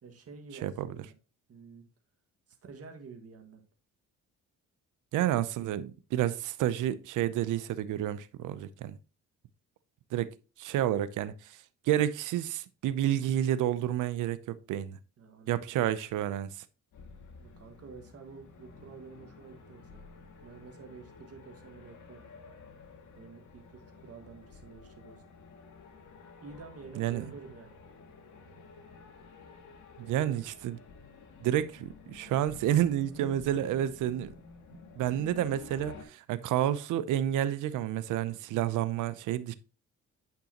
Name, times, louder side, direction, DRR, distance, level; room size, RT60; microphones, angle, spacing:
voice 1, 0.0-1.1 1.5-1.8 2.5-3.6 15.2-15.6 17.4-20.0 20.4-22.3 23.2-25.3 26.4-27.8 30.0-30.5 33.1-33.4, right 5 dB, 50° right, 1.8 m, -49 dB
voice 2, 5.1-9.0 10.1-11.6 11.9-15.0 15.5-16.5 27.0-27.3 30.0-30.8 31.4-34.3 35.0-39.5, right 11 dB, 85° right, 0.7 m, -30 dB
sound 1, 16.9-36.0, left 4 dB, 75° left, 2.0 m, -51 dB
9.1 x 5.4 x 2.9 m
cardioid pair, 90°, 30 cm